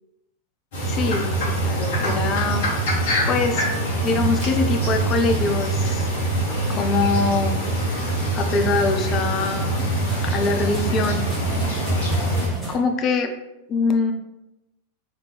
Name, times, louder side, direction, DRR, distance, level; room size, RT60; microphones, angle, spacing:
sound 1, 0.7-12.5, right 1 dB, 55° left, 1.3 m, -24 dB
voice 1, 0.9-1.3 1.6-2.6 2.9-3.0 3.3-3.7 4.0-6.1 6.7-7.6 8.3-9.8 10.3-11.2 12.7-13.3 13.7-14.1, left 4 dB, 30° left, 6 dB, 0.5 m, -23 dB
sound 2, 3.5-12.8, right 1 dB, 10° right, 1.5 m, -36 dB
3.6 x 3.6 x 3.2 m, 0.92 s
figure-of-eight pair, 90°, 0 cm